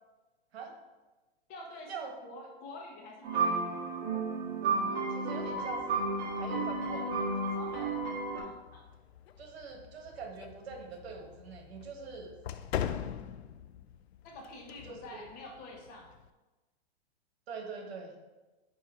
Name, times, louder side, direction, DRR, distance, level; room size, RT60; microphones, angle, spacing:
voice 1, 1.5-3.7 7.5-8.9 14.2-16.1, left 2 dB, 30° left, 0 dB, 1.1 m, -47 dB
sound 1, 3.2-8.4, right 3 dB, 45° right, 1.7 m, -32 dB
voice 2, 4.8-6.0 6.3-7.4 9.4-12.4 14.8-15.2 17.5-18.2, right 5 dB, 75° right, 3 dB, 1.5 m, -44 dB
Closing door (Cerrando puerta), 5.4-16.3, left 9 dB, 90° left, 0.5 m, -44 dB
9.0 x 3.1 x 4.2 m, 1.2 s
hypercardioid pair, 150°, 31 cm